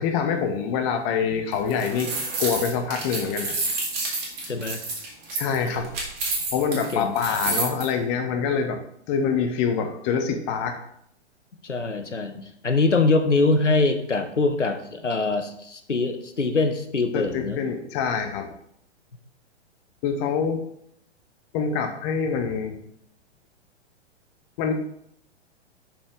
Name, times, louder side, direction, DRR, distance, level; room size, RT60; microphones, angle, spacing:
voice 1, 0.0-2.1 2.4-3.6 5.3-5.9 6.5-8.8 9.1-10.8 17.1-18.5 20.0-20.6 21.5-22.8 24.6-24.7, left 6 dB, 25° left, 5 dB, 0.8 m, -25 dB
sound 1, 1.5-7.8, right 3 dB, 35° right, 2.4 m, -29 dB
voice 2, 4.5-4.8 6.9-7.4 11.6-17.6, left 3 dB, 85° left, 7 dB, 0.9 m, -23 dB
6.4 x 5.8 x 3.6 m, 0.71 s
figure-of-eight pair, 110°, 35 cm